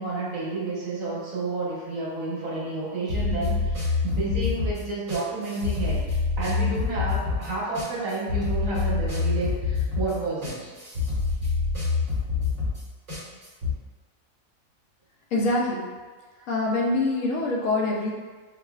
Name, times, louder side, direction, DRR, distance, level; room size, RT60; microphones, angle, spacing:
voice 1, 0.0-6.0 6.4-10.6, right 2 dB, 80° right, -6 dB, 1.4 m, -30 dB
sound 1, 3.1-13.7, left 4 dB, 60° right, 1.3 m, -27 dB
voice 2, 15.3-15.9 16.5-18.2, left 2 dB, 75° left, -1 dB, 1.0 m, -24 dB
4.7 x 2.3 x 2.3 m, 1.4 s
omnidirectional pair, 1.4 m